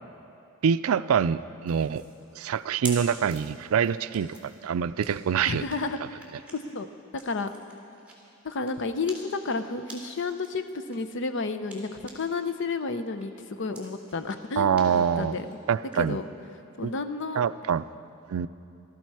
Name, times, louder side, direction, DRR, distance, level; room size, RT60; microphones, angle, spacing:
voice 1, 0.6-2.0 2.4-5.7 14.6-15.4 15.7-16.2 16.8-16.9 17.4-17.8 18.3-18.5, right 7 dB, 90° right, 15 dB, 0.4 m, -25 dB
sound 1, 1.7-12.5 12.8-16.0, right 2 dB, 5° right, 2.7 m, -47 dB
voice 2, 5.5-6.2 6.5-6.9 7.1-7.5 8.4-13.3 13.6-15.5 15.9-16.3 16.8-17.4, left 4 dB, 60° left, 9 dB, 0.7 m, -31 dB
18.5 x 13.0 x 4.7 m, 2.7 s
head